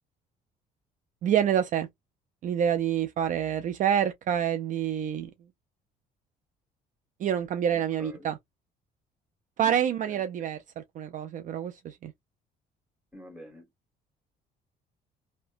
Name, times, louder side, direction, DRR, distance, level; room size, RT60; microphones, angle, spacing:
voice 1, 1.2-1.9 2.4-5.3 7.2-8.4 9.6-12.1, right 9 dB, 50° right, 0.4 m, -27 dB
voice 2, 7.7-8.3 9.6-10.5 13.1-13.7, equal, 5° right, 1.8 m, -48 dB
2.8 x 2.2 x 2.5 m
cardioid pair, 110°, 17 cm